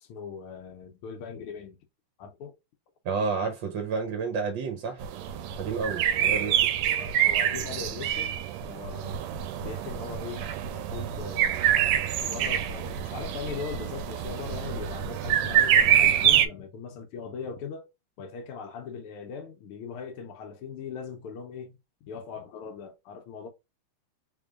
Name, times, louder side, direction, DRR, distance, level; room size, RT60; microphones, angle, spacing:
voice 1, 0.0-1.8 2.2-2.5 6.2-6.3 6.9-9.2 9.6-11.8 12.2-17.9 18.2-21.8 22.0-23.5, left 6 dB, 80° left, 1.5 m, -40 dB
voice 2, 3.0-5.0 5.6-6.7, right 4 dB, 65° right, 1.3 m, -30 dB
sound 1, 5.0-16.5, right 10 dB, 90° right, 1.5 m, -26 dB
3.6 x 3.5 x 2.4 m
omnidirectional pair, 2.4 m